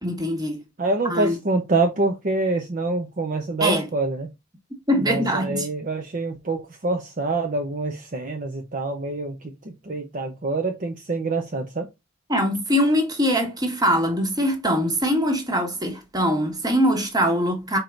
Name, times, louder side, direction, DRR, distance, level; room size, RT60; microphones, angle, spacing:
voice 1, 0.0-0.6 1.1-1.4 3.6-3.9 4.9-5.7 12.3-17.8, equal, 20° right, 1.4 m, -22 dB
voice 2, 0.8-4.3 5.0-11.9, right 3 dB, 40° right, 0.7 m, -26 dB
4.7 x 4.5 x 2.5 m
head